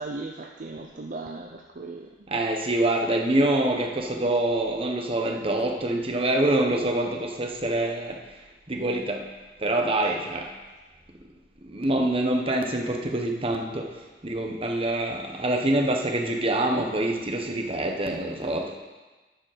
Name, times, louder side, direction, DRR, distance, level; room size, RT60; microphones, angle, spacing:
voice 1, 0.0-2.1 10.0-10.1, right 3 dB, 50° right, 2 dB, 0.6 m, -37 dB
voice 2, 2.3-8.2 8.7-9.3 9.6-10.5 11.7-13.9 14.2-18.8, right 1 dB, 35° right, 2 dB, 1.1 m, -25 dB
11.0 x 5.2 x 6.6 m, 1.2 s
head